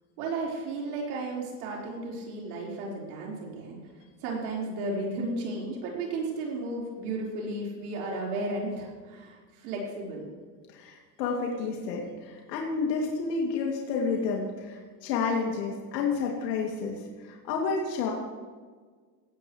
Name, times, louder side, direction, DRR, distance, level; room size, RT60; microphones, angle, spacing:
voice 1, 0.2-3.8 4.2-10.2, right 2 dB, 60° right, -3 dB, 4.5 m, -34 dB
voice 2, 10.7-18.1, left 4 dB, 75° left, -1 dB, 2.6 m, -30 dB
16.5 x 15.5 x 3.2 m, 1.5 s
supercardioid pair, 165°, 50 cm